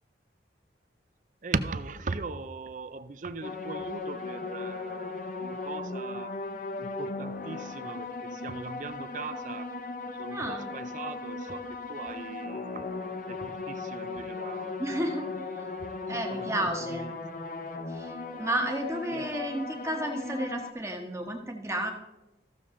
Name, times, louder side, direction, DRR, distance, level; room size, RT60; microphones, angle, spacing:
voice 1, 1.4-6.4 6.8-9.7 10.2-13.0 13.3-14.7 16.1-17.2 18.3-18.5 19.1-19.3, right 4 dB, 45° right, 13 dB, 0.5 m, -39 dB
sound 1, 3.4-20.7, left 3 dB, 45° left, 0.7 m, -37 dB
voice 2, 10.3-10.7 14.8-15.6 16.1-17.1 17.9-21.9, right 1 dB, 15° right, 3 dB, 1.2 m, -32 dB
14.5 x 6.9 x 3.8 m, 1.0 s
head